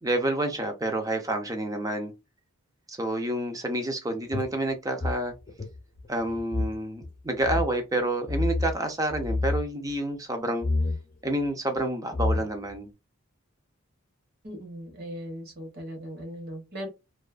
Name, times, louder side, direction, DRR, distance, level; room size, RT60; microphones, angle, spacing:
voice 1, 0.0-2.1 2.9-5.3 6.1-10.7 11.2-12.9, right 1 dB, 15° right, 0.5 m, -29 dB
sound 1, 4.3-6.8 7.0-7.1 7.4-7.7 8.3-8.7 9.1-9.6 10.6-11.0 11.8-11.9 12.1-12.7, left 2 dB, 40° left, 0.6 m, -28 dB
voice 2, 14.4-16.9, equal, 45° right, 0.9 m, -38 dB
2.5 x 2.3 x 2.4 m
head